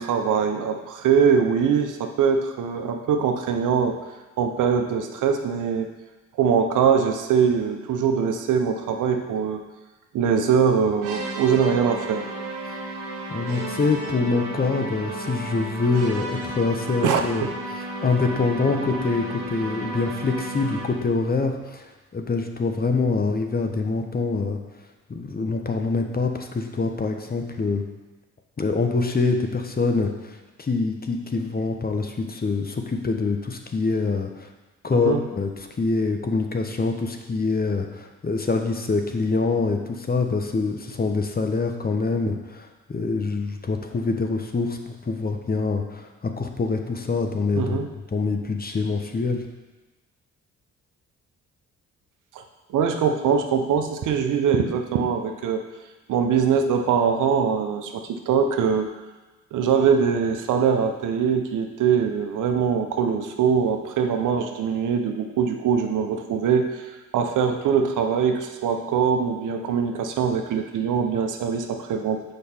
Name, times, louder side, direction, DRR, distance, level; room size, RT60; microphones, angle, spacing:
voice 1, 0.0-4.0 4.4-5.9 6.4-9.6 10.1-12.3 17.0-17.2 34.9-35.2 47.5-47.9 52.3-52.4 52.7-55.6 56.1-58.9 59.5-66.7 67.1-72.2, right 6 dB, 70° right, 5 dB, 0.8 m, -22 dB
sound 1, 11.0-21.1, right 2 dB, 85° right, 1.2 m, -33 dB
voice 2, 13.3-17.5 18.0-24.6 25.1-27.8 28.6-34.5 34.8-35.5 35.8-47.8 48.1-49.5, left 3 dB, 30° left, 4 dB, 0.9 m, -25 dB
6.5 x 5.2 x 4.4 m, 1.2 s
supercardioid pair, 60°, 32 cm